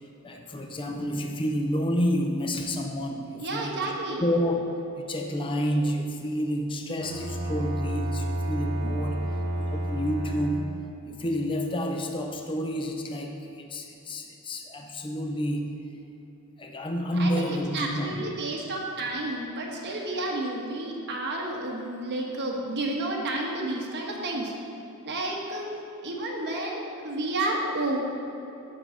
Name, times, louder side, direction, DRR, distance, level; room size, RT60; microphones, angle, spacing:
voice 1, 0.2-3.9 4.2-4.6 5.0-9.2 9.6-10.6 11.0-15.7 16.6-18.3, equal, 25° left, 3 dB, 0.5 m, -29 dB
voice 2, 3.4-4.2 17.1-24.5 25.0-25.6 26.0-28.0, right 2 dB, 55° right, -1 dB, 1.3 m, -31 dB
Bowed string instrument, 7.0-11.0, right 1 dB, 25° right, 1.4 m, -30 dB
9.3 x 3.9 x 6.5 m, 2.9 s
head